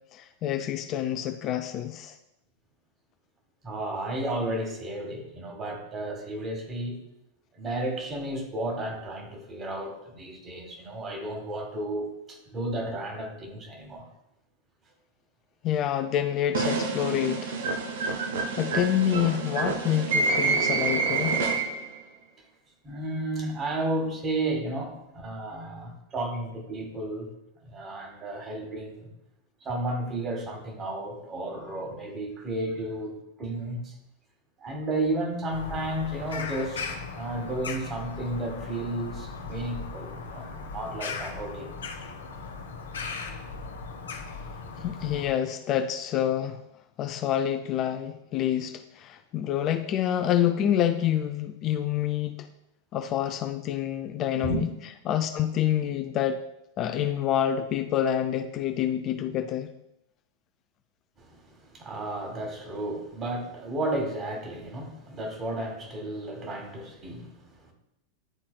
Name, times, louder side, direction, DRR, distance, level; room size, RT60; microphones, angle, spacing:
voice 1, 0.1-2.2 15.6-17.6 18.2-21.4 44.8-46.6 47.0-52.5 52.9-54.7 55.1-56.4 56.8-59.7, left 10 dB, 35° left, 8 dB, 0.3 m, -27 dB
voice 2, 3.6-7.0 7.5-14.0 22.8-27.3 27.6-29.1 29.6-34.0 34.6-41.8 54.4-54.6 61.2-67.7, right 1 dB, 25° right, 2 dB, 1.7 m, -33 dB
sound 1, 16.5-22.0, right 4 dB, 60° right, 0.7 m, -27 dB
Bird vocalization bird call bird song, 35.5-45.3, left 4 dB, 65° left, 0.8 m, -38 dB
11.0 x 4.2 x 2.3 m, 0.84 s
figure-of-eight pair, 90°, 0 cm